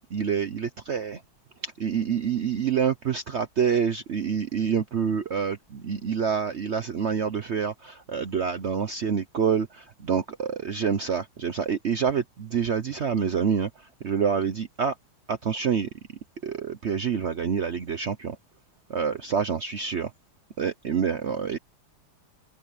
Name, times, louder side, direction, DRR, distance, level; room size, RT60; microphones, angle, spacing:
voice 1, 0.1-1.2 1.6-14.9 15.3-15.9 16.4-18.4 18.9-20.1 20.6-21.6, right 7 dB, 70° right, 0.6 m, -27 dB
open air
omnidirectional pair, 2.4 m